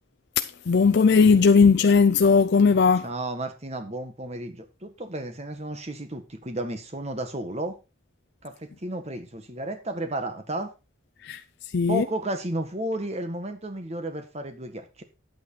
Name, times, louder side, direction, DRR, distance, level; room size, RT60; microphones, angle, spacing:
voice 1, 0.4-3.1 11.2-11.4 11.7-12.0, left 5 dB, 55° left, 0.4 m, -18 dB
voice 2, 3.0-7.8 8.4-10.7 11.9-15.0, right 1 dB, 30° right, 1.5 m, -33 dB
9.3 x 8.7 x 4.0 m
head